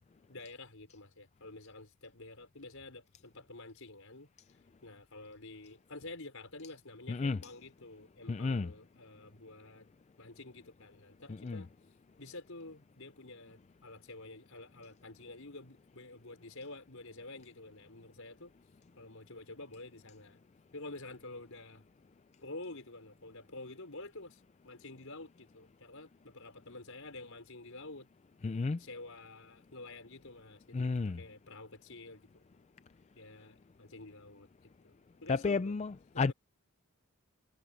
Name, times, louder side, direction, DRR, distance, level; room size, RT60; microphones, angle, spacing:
voice 1, 0.3-4.3 4.8-9.9 10.2-11.7 12.2-18.5 19.0-20.4 20.7-21.8 22.4-28.1 28.8-32.4 33.2-34.9 35.2-35.7 36.1-36.3, left 2 dB, 65° left, 5.5 m, -49 dB
voice 2, 7.1-7.4 8.3-8.7 11.4-11.6 28.4-28.8 30.7-31.2 35.3-36.3, left 4 dB, 30° left, 0.3 m, -32 dB
head